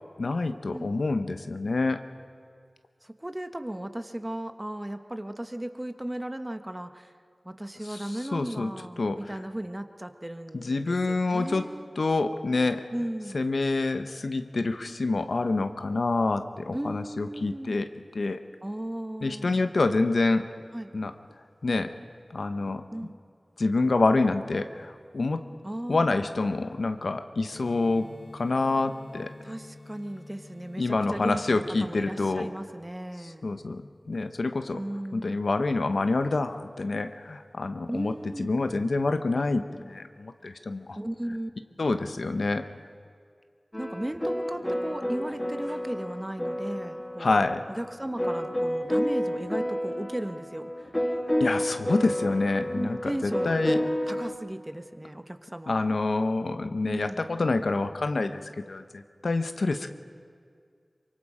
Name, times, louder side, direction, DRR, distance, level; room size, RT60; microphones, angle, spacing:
voice 1, 0.2-2.0 7.9-8.0 8.3-8.7 9.0-9.2 10.5-11.7 12.0-12.8 13.3-17.9 18.1-18.4 19.2-20.5 20.9-21.1 21.6-21.9 22.3-22.8 23.6-25.4 25.9-29.3 30.8-32.5 33.4-34.8 35.1-38.1 38.4-41.0 41.8-42.6 47.2-47.6 51.4-53.8 55.7-59.9, left 3 dB, 80° left, 8 dB, 1.0 m, -27 dB
voice 2, 3.0-7.1 7.4-11.9 12.9-13.4 16.7-17.8 18.6-19.5 20.7-20.9 22.9-23.2 25.6-26.1 29.4-33.5 34.7-35.4 37.9-38.5 40.9-41.5 43.8-50.9 52.6-55.9 56.8-57.2, right 1 dB, 20° right, 8 dB, 1.2 m, -36 dB
sound 1, 27.5-32.5, left 2 dB, 40° left, 1.3 m, -48 dB
sound 2, 43.7-54.3, equal, 15° left, 2.2 m, -30 dB
24.5 x 23.5 x 5.0 m, 2.2 s
wide cardioid pair, 50°, 0 cm